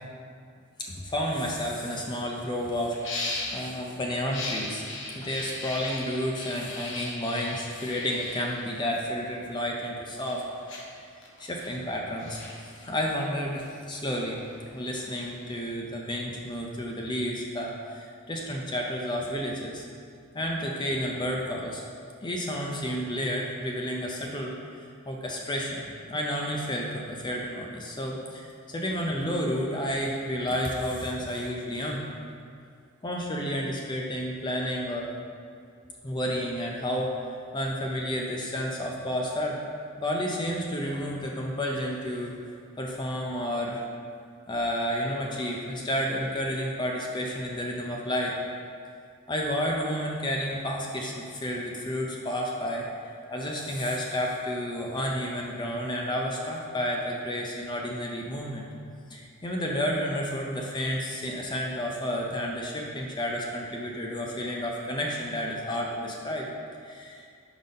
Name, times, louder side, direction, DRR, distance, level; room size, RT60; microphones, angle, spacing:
voice 1, 1.0-4.8 5.2-10.4 11.4-14.4 14.7-19.8 20.3-21.8 22.2-25.8 26.1-32.0 33.0-35.1 36.0-39.6 40.0-42.3 42.8-43.8 44.5-48.4 49.3-52.9 53.3-58.7 59.1-66.5 66.8-67.2, equal, 20° left, -1 dB, 0.5 m, -31 dB
sound 1, 2.4-2.5 2.9-3.7 4.2-9.4 9.9-15.7, left 2 dB, 55° left, 0.8 m, -38 dB
5.3 x 4.0 x 5.1 m, 2.3 s
head